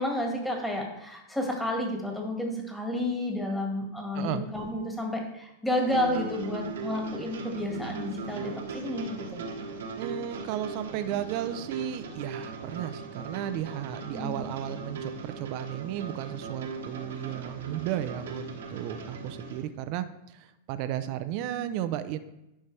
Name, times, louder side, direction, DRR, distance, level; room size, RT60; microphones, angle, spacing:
voice 1, 0.0-9.4 14.1-14.4 21.6-21.7, left 1 dB, 5° left, 1 dB, 1.8 m, -31 dB
voice 2, 4.1-4.5 10.0-22.2, right 11 dB, 50° right, 11 dB, 0.5 m, -34 dB
sound 1, 5.7-19.6, right 4 dB, 80° right, 1.2 m, -39 dB
10.5 x 4.2 x 3.3 m, 0.91 s
hypercardioid pair, 110°, 0 cm